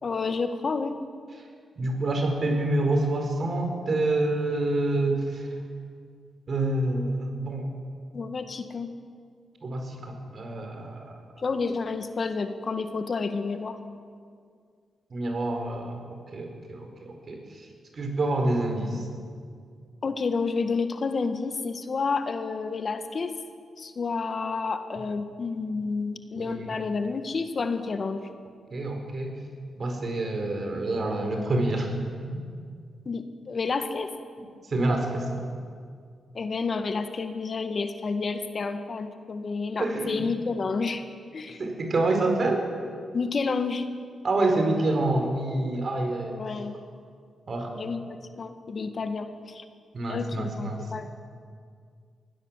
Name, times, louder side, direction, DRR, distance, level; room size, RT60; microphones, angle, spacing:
voice 1, 0.0-1.0 8.1-8.9 11.4-13.8 20.0-23.3 23.8-28.3 33.0-34.1 36.3-41.0 41.3-41.6 43.1-43.8 46.3-46.7 47.7-49.6 50.1-51.1, left 4 dB, 50° left, 8 dB, 1.7 m, -30 dB
voice 2, 1.8-5.5 6.5-7.8 9.6-11.2 15.1-17.7 17.9-19.1 26.4-26.7 28.7-29.4 29.8-31.9 34.4-35.4 39.8-40.2 41.6-42.7 44.2-46.4 47.5-47.7 49.9-50.9, right 2 dB, 55° right, 4 dB, 4.7 m, -27 dB
22.5 x 16.5 x 7.5 m, 2.2 s
cardioid pair, 55°, 0 cm